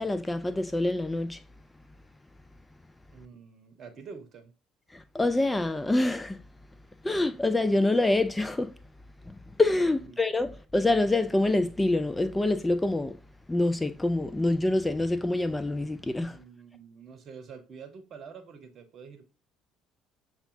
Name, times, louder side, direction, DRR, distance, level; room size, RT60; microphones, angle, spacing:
voice 1, 0.0-1.4 4.9-6.4 7.0-8.7 9.3-13.2 13.5-16.4, left 2 dB, 10° left, 0.3 m, -26 dB
voice 2, 3.1-4.5 10.0-10.2 16.3-19.3, right 5 dB, 45° right, 0.9 m, -47 dB
6.8 x 2.9 x 2.6 m
figure-of-eight pair, 55°, 0 cm